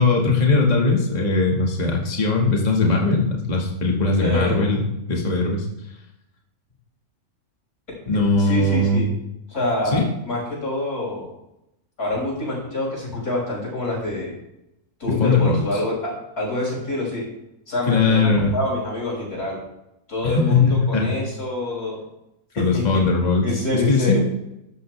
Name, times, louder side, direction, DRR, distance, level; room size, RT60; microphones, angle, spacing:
voice 1, 0.0-5.7 8.1-9.0 9.9-10.1 15.1-15.6 17.9-18.5 20.2-21.2 22.6-23.5 23.7-24.2, left 3 dB, 30° left, -1 dB, 1.9 m, -19 dB
voice 2, 4.2-4.6 8.4-9.1 9.5-11.3 12.0-14.3 15.0-17.2 17.7-19.6 20.1-22.0 22.5-22.8 23.4-24.2, left 1 dB, 85° left, -3 dB, 6.8 m, -26 dB
15.0 x 12.5 x 3.3 m, 0.85 s
omnidirectional pair, 1.6 m